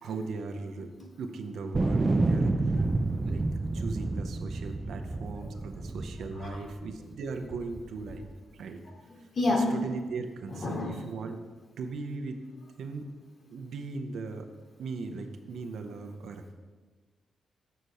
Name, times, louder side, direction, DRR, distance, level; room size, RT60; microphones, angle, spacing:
voice 1, 0.0-0.9 1.2-2.8 3.3-8.3 8.6-8.8 9.8-11.4 11.8-12.4 12.8-13.0 13.5-14.5 14.8-16.5, right 3 dB, 75° right, 6 dB, 0.7 m, -38 dB
sound 1, 1.7-7.0 7.5-8.3, right 2 dB, 25° right, 0.4 m, -29 dB
voice 2, 9.1-9.7 10.5-11.1, left 2 dB, 45° left, 1 dB, 1.5 m, -30 dB
6.7 x 4.1 x 6.5 m, 1.4 s
cardioid pair, 100°, 0 cm